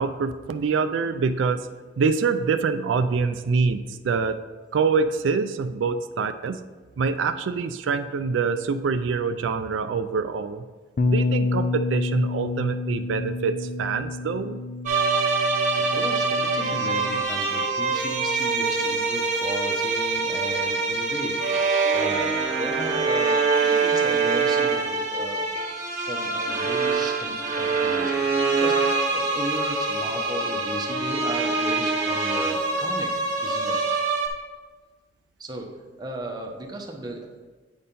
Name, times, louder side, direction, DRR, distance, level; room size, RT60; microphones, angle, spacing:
voice 1, 0.0-1.7 2.0-4.4 4.7-6.6 7.0-10.6 11.1-14.6, right 5 dB, 90° right, 10 dB, 0.4 m, -25 dB
Bass guitar, 11.0-17.2, left 3 dB, 45° left, 0.4 m, -28 dB
sound 1, 14.9-34.3, right 4 dB, 40° right, 1.1 m, -24 dB
voice 2, 15.8-21.6 21.9-25.5 25.9-33.1 33.4-33.8 35.4-35.7 36.0-37.4, right 2 dB, 20° right, 1 dB, 0.9 m, -35 dB
8.6 x 4.3 x 5.3 m, 1.3 s
head